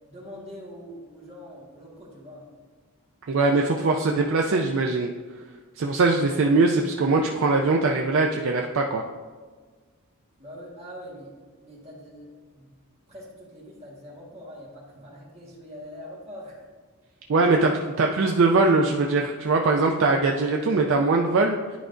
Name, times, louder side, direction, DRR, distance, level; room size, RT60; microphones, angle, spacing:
voice 1, 0.1-2.5 10.4-12.7 13.1-16.7 20.0-20.4, equal, 30° right, -4 dB, 1.5 m, -43 dB
voice 2, 3.3-5.1 5.8-9.0 17.3-21.6, right 3 dB, 60° right, 1 dB, 0.4 m, -21 dB
10.0 x 4.7 x 2.5 m, 1.5 s
head